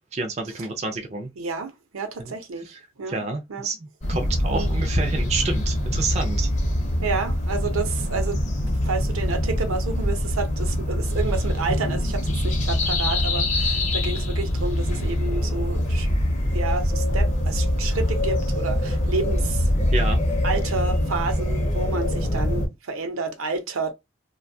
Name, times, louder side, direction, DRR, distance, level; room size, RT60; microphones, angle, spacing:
voice 1, 0.1-1.3 3.1-6.5 19.9-20.2, right 3 dB, 30° right, 0.3 m, -28 dB
voice 2, 1.4-3.2 3.5-3.7 4.5-4.7 7.0-16.1 16.5-19.7 20.4-23.9, right 4 dB, 80° right, 0.6 m, -30 dB
sound 1, 4.0-22.7, left 1 dB, 35° left, 0.6 m, -24 dB
2.5 x 2.2 x 2.6 m
head